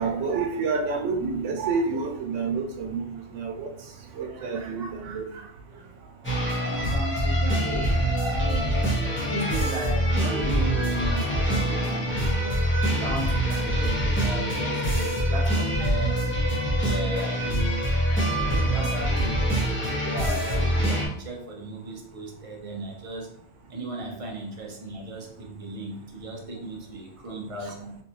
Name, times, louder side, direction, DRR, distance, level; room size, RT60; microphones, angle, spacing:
voice 1, 0.0-3.7 4.2-5.2 11.1-11.2 11.6-12.0, right 4 dB, 90° right, 5 dB, 1.0 m, -29 dB
sound 1, 6.2-21.1, equal, 10° left, 0.8 m, -25 dB
voice 2, 6.5-8.9 9.2-12.6 12.9-16.2 16.8-17.9 18.5-19.4 20.0-23.3 23.7-28.0, right 1 dB, 40° right, 0 dB, 0.6 m, -36 dB
3.2 x 2.6 x 2.8 m, 0.68 s
omnidirectional pair, 1.2 m